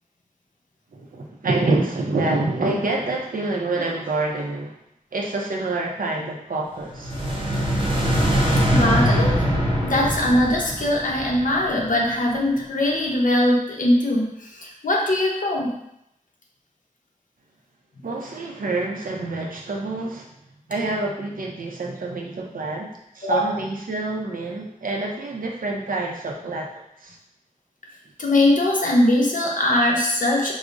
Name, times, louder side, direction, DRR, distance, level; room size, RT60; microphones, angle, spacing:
voice 1, 0.9-4.7 5.1-7.1 18.0-20.3 20.7-22.9 23.1-26.7 27.0-27.2, right 2 dB, 85° right, -1 dB, 0.6 m, -27 dB
sound 1, 6.9-12.0, equal, 35° right, 0.8 m, -22 dB
voice 2, 8.7-9.5 9.8-15.7 23.2-23.5 28.2-30.5, left 1 dB, 70° left, -2 dB, 0.7 m, -21 dB
4.8 x 2.0 x 2.5 m, 0.77 s
wide cardioid pair, 70°, 14 cm